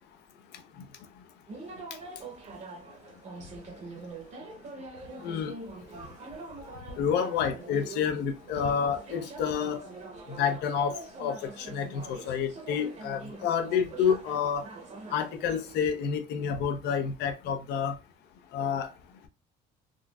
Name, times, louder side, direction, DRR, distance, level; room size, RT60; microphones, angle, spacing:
voice 1, 0.5-1.3 1.7-2.6 3.4-3.6 3.9-4.1 4.8-6.1 6.4-6.5 6.7-10.0 10.3-14.7 15.1-18.0 18.5-19.3, left 7 dB, 80° left, 0.6 m, -30 dB
sound 1, 1.5-15.8, right 3 dB, 40° right, 0.8 m, -44 dB
3.7 x 2.3 x 2.2 m
cardioid pair, 110°, 17 cm